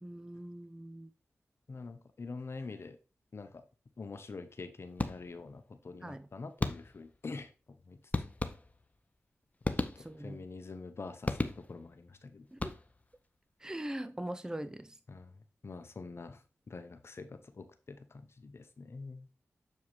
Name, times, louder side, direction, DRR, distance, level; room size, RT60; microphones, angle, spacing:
voice 1, 0.0-1.1 6.0-6.3 10.0-10.4 12.5-12.7 13.6-14.9, right 1 dB, 15° right, 0.6 m, -41 dB
voice 2, 1.7-3.0 3.3-3.6 4.0-7.5 7.9-8.0 10.0-12.4 15.1-15.3 15.6-16.4 16.7-18.0 18.4-19.3, left 3 dB, 55° left, 0.9 m, -45 dB
sound 1, 5.0-5.6 6.6-7.2 8.1-9.0 9.6-10.4 11.3-12.0 12.5-13.2, left 2 dB, 30° left, 0.9 m, -35 dB
7.3 x 4.6 x 3.2 m
cardioid pair, 45°, 5 cm